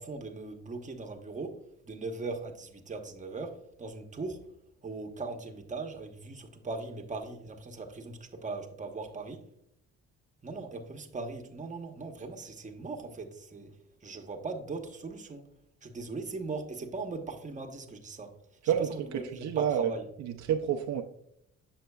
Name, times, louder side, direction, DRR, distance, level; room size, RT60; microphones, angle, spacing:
voice 1, 0.0-1.6 1.8-4.5 4.8-9.4 10.4-13.7 14.0-15.4 15.8-18.3 18.6-20.0, right 3 dB, 25° right, 1.0 m, -39 dB
voice 2, 18.6-19.1 19.4-19.9 20.2-21.0, right 9 dB, 65° right, 0.6 m, -28 dB
7.8 x 6.3 x 2.3 m
cardioid pair, 90°, 30 cm